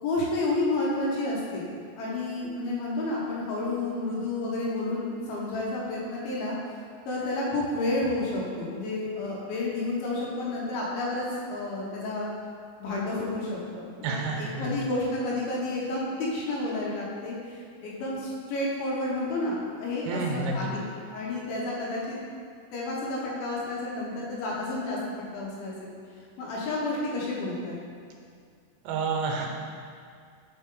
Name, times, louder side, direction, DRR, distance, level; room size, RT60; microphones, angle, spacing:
voice 1, 0.0-1.7 2.0-6.6 7.1-12.3 12.8-22.2 22.7-25.0 25.3-25.9 26.4-27.8, left 2 dB, 75° left, -4 dB, 2.7 m, -30 dB
voice 2, 14.0-14.7 20.1-20.5 28.8-29.5, right 4 dB, 85° right, 1 dB, 2.7 m, -29 dB
5.4 x 4.8 x 3.7 m, 2.2 s
omnidirectional pair, 4.5 m